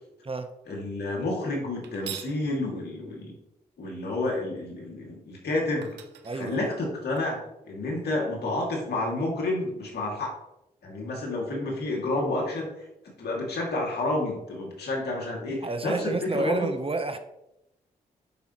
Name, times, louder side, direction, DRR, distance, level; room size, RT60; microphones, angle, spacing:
voice 1, 0.7-3.4 3.8-6.0 6.3-7.4 7.7-10.3 10.8-12.7 13.2-16.7, left 2 dB, 70° left, -1 dB, 2.5 m, -30 dB
sound 1, 1.8-2.4 5.3-5.4 5.8-7.2, right 11 dB, 90° right, 0.6 m, -42 dB
voice 2, 6.2-6.7 15.6-17.2, right 3 dB, 35° right, 8 dB, 1.0 m, -30 dB
10.5 x 5.4 x 3.1 m, 0.88 s
supercardioid pair, 45°, 17 cm